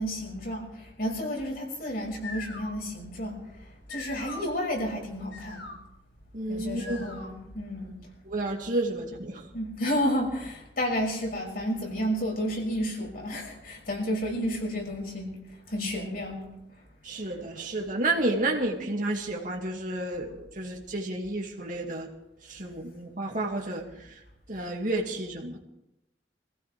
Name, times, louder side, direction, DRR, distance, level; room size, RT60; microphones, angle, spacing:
voice 1, 0.0-3.4 3.9-5.7 6.5-8.0 9.5-15.4 15.7-16.5, equal, 55° left, -1 dB, 6.1 m, -31 dB
sound 1, 2.0-7.5, left 3 dB, 80° left, 7.0 m, -44 dB
voice 2, 6.3-7.1 8.3-9.4 17.0-22.1 22.5-23.8 24.5-25.6, right 2 dB, 45° right, -1 dB, 2.3 m, -31 dB
26.0 x 16.0 x 3.4 m, 0.87 s
head